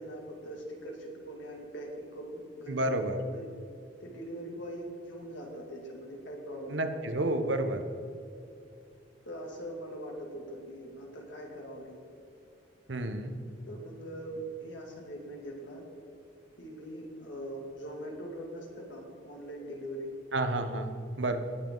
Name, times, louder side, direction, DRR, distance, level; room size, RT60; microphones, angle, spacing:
voice 1, 0.0-3.5 4.0-6.9 9.2-12.0 13.7-15.8 16.6-20.1, right 1 dB, 85° left, -1 dB, 2.7 m, -42 dB
voice 2, 2.7-3.2 6.7-7.8 12.9-13.3 20.3-21.4, right 1 dB, 80° right, 7 dB, 1.1 m, -30 dB
19.0 x 7.2 x 4.0 m, 2.5 s
head